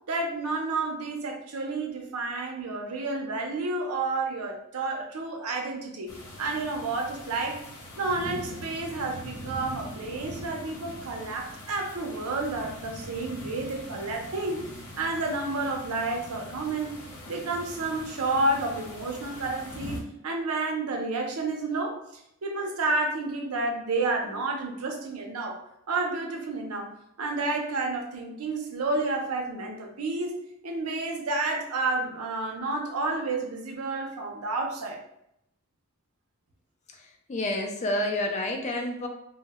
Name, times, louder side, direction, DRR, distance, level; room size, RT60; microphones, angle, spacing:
voice 1, 0.1-6.1 6.4-7.6 8.0-14.6 15.0-16.9 17.3-20.0 20.2-22.0 22.4-25.6 25.9-26.9 27.2-30.3 30.6-35.0, right 3 dB, 80° right, 2 dB, 0.6 m, -30 dB
sound 1, 6.1-20.0, equal, 80° left, 0.7 m, -42 dB
voice 2, 37.3-39.1, left 1 dB, 30° left, 3 dB, 0.4 m, -28 dB
2.1 x 2.0 x 3.4 m, 0.78 s
head